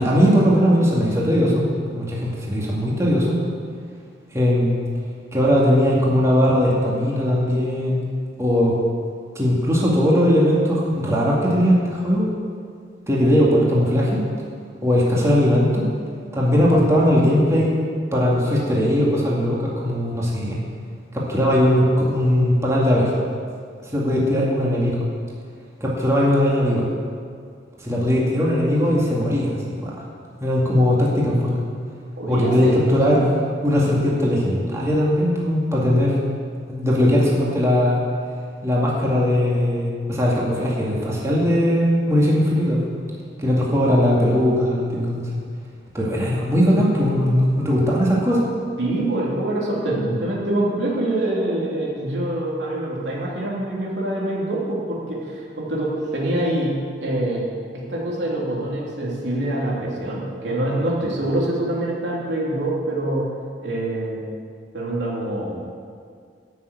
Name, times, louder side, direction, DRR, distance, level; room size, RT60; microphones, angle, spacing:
voice 1, 0.0-1.7 1.9-3.4 4.3-4.8 5.3-8.0 8.4-8.8 9.4-12.3 13.1-14.2 14.8-15.9 16.3-17.7 18.1-20.6 21.1-23.1 23.9-25.1 25.8-26.9 27.8-29.9 30.4-31.6 32.3-33.3 33.6-36.2 36.7-38.0 38.6-42.8 43.4-45.3 45.9-48.5, equal, 15° right, -5 dB, 2.2 m, -19 dB
voice 2, 32.2-32.8 33.1-33.2 48.8-56.8 57.0-57.5 57.7-63.3 63.6-64.2 64.7-65.7, right 1 dB, 85° right, -4 dB, 2.9 m, -25 dB
12.5 x 6.7 x 8.2 m, 2.1 s
head